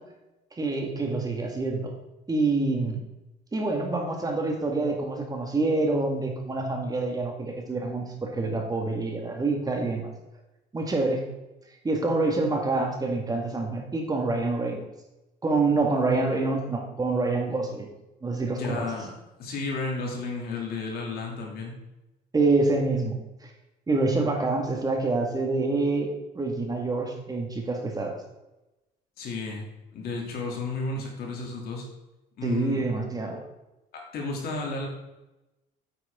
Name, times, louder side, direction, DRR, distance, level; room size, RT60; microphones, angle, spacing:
voice 1, 0.6-1.9 2.3-3.0 3.5-10.1 10.7-11.2 11.8-14.9 15.4-17.9 18.2-18.9 22.3-23.1 23.4-23.5 23.9-28.2 32.4-33.4, right 3 dB, 20° right, 2 dB, 1.9 m, -26 dB
voice 2, 18.6-19.1 19.4-21.7 29.2-29.6 29.9-31.8 32.4-32.8 33.9-34.9, left 3 dB, 65° left, 0 dB, 3.0 m, -32 dB
9.1 x 9.0 x 3.8 m, 0.99 s
cardioid pair, 110°, 17 cm